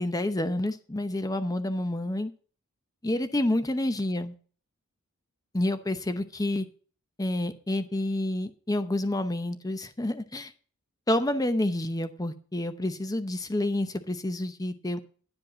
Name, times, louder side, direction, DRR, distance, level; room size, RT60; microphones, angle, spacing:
voice 1, 0.0-2.3 3.0-4.3 5.5-6.7 7.2-10.5 11.1-15.0, left 1 dB, 15° left, 10 dB, 0.7 m, -29 dB
11.5 x 5.3 x 7.3 m, 0.41 s
head